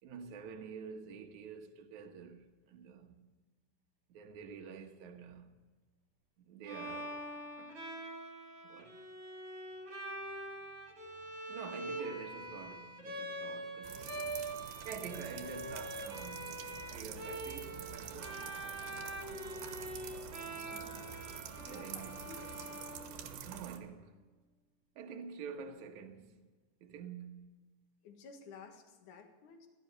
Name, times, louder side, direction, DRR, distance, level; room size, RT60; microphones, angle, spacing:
voice 1, 0.0-3.2 4.1-5.5 6.4-7.8 8.7-9.0 11.5-18.3 19.8-20.0 21.7-22.2 23.5-24.2 25.0-26.5 26.8-27.5, right 6 dB, 60° right, 2.4 m, -48 dB
Bowed string instrument, 6.6-23.6, right 1 dB, 40° right, 3.0 m, -44 dB
voice 2, 10.0-11.2 20.6-22.7 28.0-29.7, left 4 dB, 60° left, 3.0 m, -56 dB
sound 1, 13.8-23.8, right 8 dB, 80° right, 3.2 m, -47 dB
16.0 x 13.0 x 6.8 m
omnidirectional pair, 4.5 m